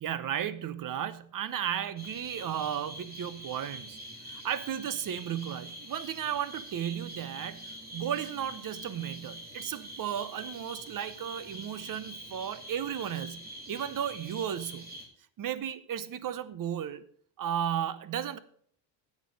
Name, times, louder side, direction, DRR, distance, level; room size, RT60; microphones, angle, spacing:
voice 1, 0.0-14.9 15.4-17.0 17.4-18.4, right 9 dB, 45° right, 0.8 m, -34 dB
sound 1, 2.0-15.1, equal, 20° right, 3.0 m, -45 dB
10.0 x 7.6 x 5.0 m
cardioid pair, 100°, 46 cm